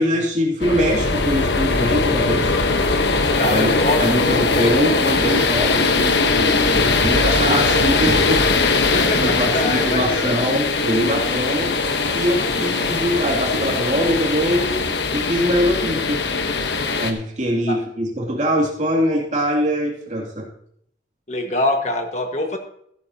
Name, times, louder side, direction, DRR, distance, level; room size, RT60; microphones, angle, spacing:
voice 1, 0.0-2.5 3.5-11.7 12.1-16.2 17.0-20.5, equal, 40° right, -2 dB, 2.6 m, -23 dB
sound 1, 0.6-17.1, left 3 dB, 70° left, 1.1 m, -20 dB
voice 2, 3.4-4.7 8.9-10.4 17.7-17.8 21.3-22.6, left 1 dB, 40° left, 4 dB, 1.5 m, -24 dB
14.0 x 12.0 x 2.8 m, 0.67 s
head